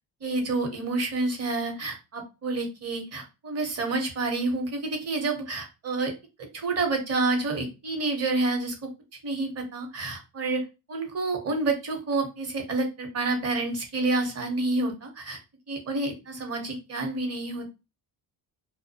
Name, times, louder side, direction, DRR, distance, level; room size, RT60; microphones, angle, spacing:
voice 1, 0.2-6.1 6.4-8.7 9.2-10.6 10.9-15.4 15.7-17.7, right 3 dB, 40° right, 4 dB, 0.8 m, -29 dB
2.3 x 2.0 x 2.7 m, 0.28 s
cardioid pair, 100°, 39 cm